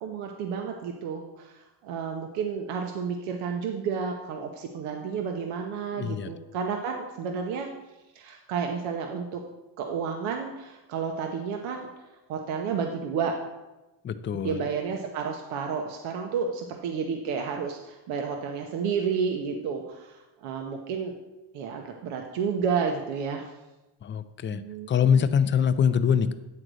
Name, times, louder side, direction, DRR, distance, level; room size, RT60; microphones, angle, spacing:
voice 1, 0.0-1.6 1.8-7.7 8.1-9.4 9.8-11.9 12.3-13.4 14.4-21.1 21.5-23.5 24.5-25.0, right 6 dB, 90° right, 3 dB, 1.0 m, -31 dB
voice 2, 5.9-6.4 14.0-14.7 24.0-24.6 24.9-26.3, left 7 dB, 25° left, 12 dB, 0.3 m, -24 dB
9.7 x 3.9 x 6.2 m, 1.1 s
cardioid pair, 120°, 49 cm